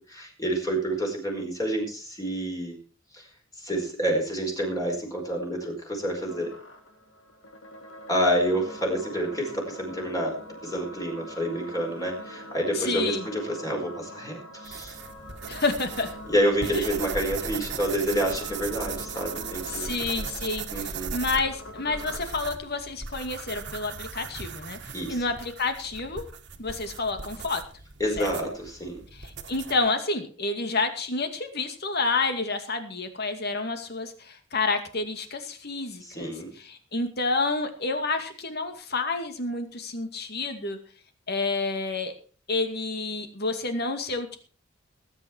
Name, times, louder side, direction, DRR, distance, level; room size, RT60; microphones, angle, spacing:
voice 1, 0.1-2.8 3.1-3.3 3.6-6.5 8.1-15.0 16.3-19.9 20.7-21.1 24.9-25.2 28.0-29.0 36.0-36.5, right 1 dB, 20° left, 0 dB, 5.0 m, -28 dB
sound 1, 6.3-22.3, equal, 70° left, 3.6 m, -44 dB
voice 2, 12.7-13.3 15.5-16.1 16.7-16.9 19.7-24.8 25.1-26.2 26.6-27.6 28.2-28.3 29.5-36.3 36.6-40.8 41.3-42.1 42.5-44.4, left 3 dB, 55° left, 7 dB, 2.4 m, -29 dB
sound 2, 14.6-29.9, right 5 dB, 60° right, 1.7 m, -38 dB
19.5 x 9.5 x 4.6 m, 0.39 s
head